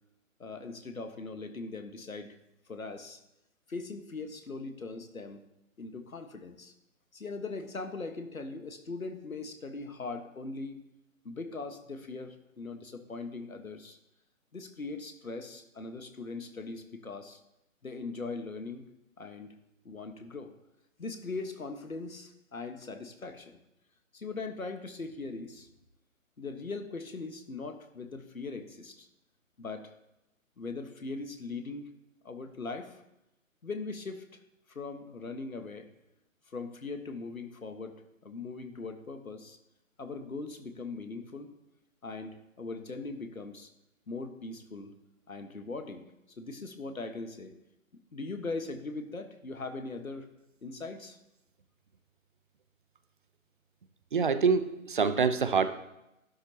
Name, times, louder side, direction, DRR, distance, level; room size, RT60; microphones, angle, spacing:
voice 1, 0.4-2.4 2.7-3.2 3.7-5.4 5.8-6.7 7.1-10.8 11.2-14.0 14.5-17.4 17.8-18.8 19.2-19.5 19.8-20.5 21.0-23.6 24.1-25.7 26.4-29.1 29.6-29.9 30.6-31.9 32.2-33.0 33.6-34.2 34.7-35.9 36.5-39.6 40.0-41.5 42.0-43.7 44.1-44.9 45.3-46.1 46.4-47.5 48.1-50.3 50.6-51.2, left 3 dB, 80° left, 8 dB, 1.5 m, -40 dB
voice 2, 54.1-55.7, right 5 dB, 40° right, 11 dB, 0.7 m, -25 dB
13.0 x 11.5 x 2.9 m, 0.89 s
figure-of-eight pair, 140°, 41 cm